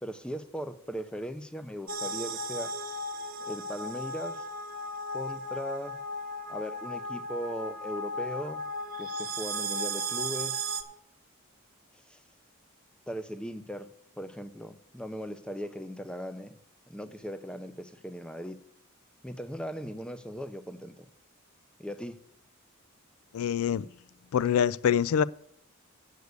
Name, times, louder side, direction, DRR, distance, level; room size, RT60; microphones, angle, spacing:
voice 1, 0.0-2.7 3.4-4.5 5.1-6.0 6.5-8.7 9.0-10.6 12.1-12.2 13.1-16.6 16.9-18.6 19.2-21.1 21.8-22.2, equal, 5° left, 0.5 m, -38 dB
sound 1, 1.9-10.8, right 1 dB, 45° right, 0.9 m, -35 dB
voice 2, 23.3-23.8 24.3-25.2, left 8 dB, 80° left, 0.3 m, -25 dB
8.1 x 6.6 x 8.1 m
head